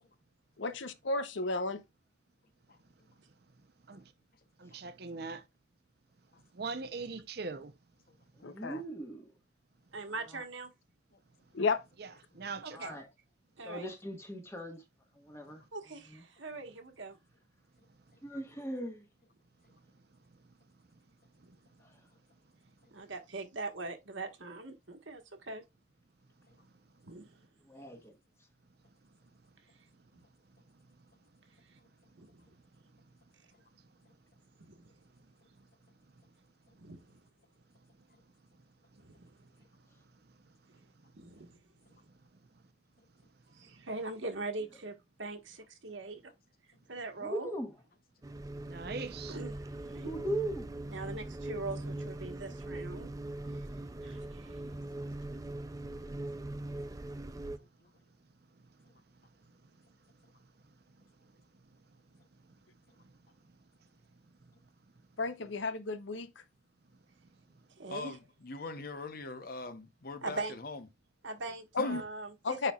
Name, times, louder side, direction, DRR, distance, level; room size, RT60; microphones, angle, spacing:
voice 1, 0.6-1.8 8.4-8.8 11.5-11.8 65.2-66.3 71.8-72.0 72.4-72.7, left 3 dB, 75° left, 0.7 m, -33 dB
voice 2, 4.6-5.4 6.5-7.7 12.0-13.0 48.6-49.4, right 4 dB, 55° right, 0.7 m, -41 dB
voice 3, 8.4-9.3 12.7-13.0 13.6-14.8 15.2-15.6 18.2-19.0 27.7-28.1 47.2-47.7 50.0-50.7, right 1 dB, 15° left, 1.5 m, -38 dB
voice 4, 9.9-10.7 12.6-12.9 13.6-13.9 15.7-17.2 21.4-21.5 22.9-25.6 27.0-27.4 30.1-30.2 32.2-32.4 34.6-34.9 36.8-37.0 39.0-39.2 41.1-41.6 43.5-46.2 46.9-47.5 49.3-49.5 49.8-50.1 50.9-53.1 53.5-53.7 54.0-54.6 67.8-68.2 70.2-70.6 71.2-72.7, right 3 dB, 80° right, 1.5 m, -42 dB
sound 1, 48.2-57.6, right 1 dB, 20° right, 0.4 m, -41 dB
voice 5, 67.9-70.8 71.8-72.0, left 3 dB, 50° left, 0.9 m, -42 dB
9.8 x 4.3 x 2.4 m
head